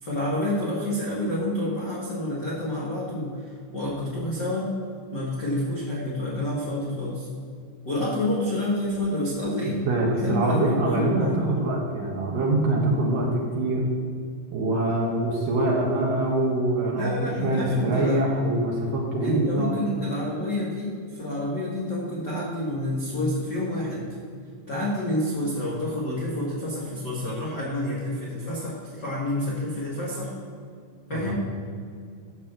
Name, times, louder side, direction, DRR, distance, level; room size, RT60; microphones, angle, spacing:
voice 1, 0.0-4.7 5.1-7.3 7.8-9.8 10.1-11.7 16.9-18.2 19.2-24.1 24.7-30.3 31.1-31.4, left 1 dB, 80° left, -6 dB, 0.9 m, -28 dB
voice 2, 9.9-13.8 14.5-19.7 31.1-31.2, right 2 dB, 65° right, -2 dB, 2.4 m, -24 dB
12.5 x 5.7 x 7.3 m, 2.2 s
omnidirectional pair, 5.3 m